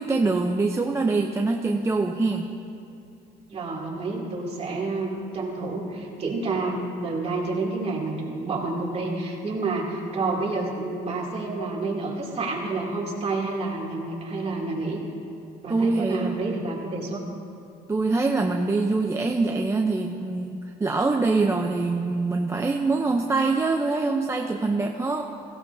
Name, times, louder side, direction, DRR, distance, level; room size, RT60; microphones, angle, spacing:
voice 1, 0.0-2.5 15.7-16.6 17.9-25.2, right 3 dB, 15° right, 2 dB, 0.6 m, -24 dB
voice 2, 3.5-15.0 15.6-17.2, right 3 dB, 35° right, -3 dB, 2.7 m, -29 dB
17.0 x 16.0 x 2.7 m, 2.5 s
cardioid pair, 110°, 17 cm